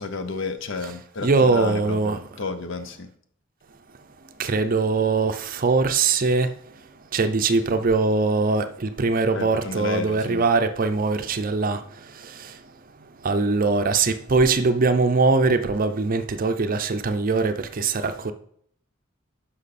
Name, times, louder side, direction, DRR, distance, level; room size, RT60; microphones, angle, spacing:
voice 1, 0.0-3.1 9.3-10.4, left 3 dB, 65° left, 0.7 m, -32 dB
voice 2, 1.2-2.2 4.4-6.5 7.1-11.8 13.2-18.3, right 3 dB, 45° right, 0.5 m, -21 dB
10.5 x 5.6 x 4.2 m
head